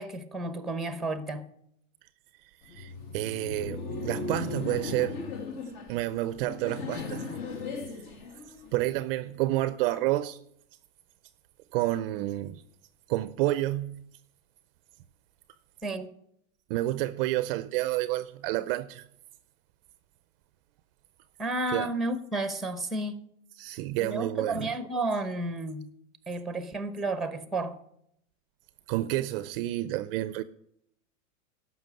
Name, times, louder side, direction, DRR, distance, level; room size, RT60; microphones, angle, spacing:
voice 1, 0.0-1.4 15.8-16.1 21.4-23.2 24.0-25.9 26.3-27.8, right 2 dB, ahead, 0.8 m, -32 dB
Laughter, 2.6-8.9, left 4 dB, 45° left, 1.8 m, -37 dB
voice 2, 2.6-5.2 5.9-7.2 8.7-10.4 11.7-12.6 13.1-14.1 16.7-19.1 21.7-21.9 23.6-24.7 28.9-30.4, right 16 dB, 45° right, 0.5 m, -29 dB
12.5 x 5.9 x 7.7 m
supercardioid pair, 135°, 41 cm